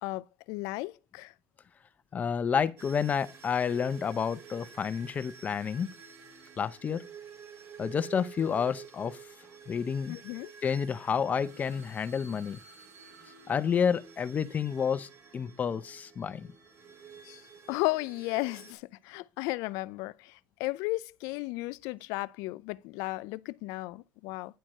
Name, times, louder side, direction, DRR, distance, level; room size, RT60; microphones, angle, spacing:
voice 1, 0.0-1.3 10.1-10.5 17.2-17.4 17.7-24.6, left 21 dB, 75° left, 0.4 m, -34 dB
voice 2, 2.1-5.9 6.6-7.0 7.8-9.2 9.7-10.2 10.6-12.6 13.5-16.5, left 7 dB, 25° left, 0.6 m, -30 dB
sound 1, 2.8-18.7, right 6 dB, 55° right, 2.4 m, -51 dB
10.0 x 4.5 x 6.4 m
cardioid pair, 135°, 6 cm